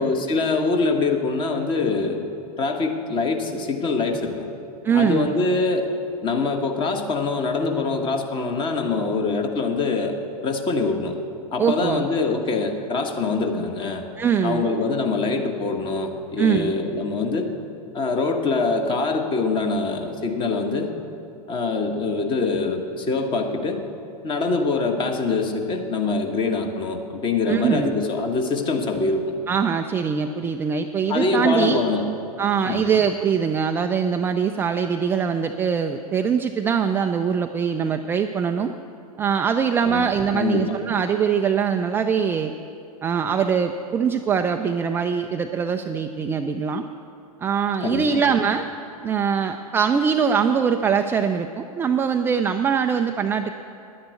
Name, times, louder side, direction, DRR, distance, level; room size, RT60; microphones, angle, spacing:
voice 1, 0.0-2.3 2.6-4.5 4.9-5.9 6.2-10.2 10.4-11.2 11.5-14.0 14.4-17.5 17.9-20.9 21.5-23.8 24.2-29.2 31.1-32.1 32.6-32.9 39.8-40.1 40.3-40.8 47.8-48.3, left 3 dB, 25° left, 5 dB, 1.4 m, -24 dB
voice 2, 4.8-5.3 11.6-12.1 14.2-14.7 16.4-16.8 27.5-27.9 29.5-31.8 32.4-38.7 39.2-42.5 43.0-46.9 47.4-48.7 49.0-53.6, right 7 dB, 10° right, 6 dB, 0.3 m, -22 dB
10.5 x 10.5 x 8.2 m, 2.6 s
figure-of-eight pair, 100°, 20 cm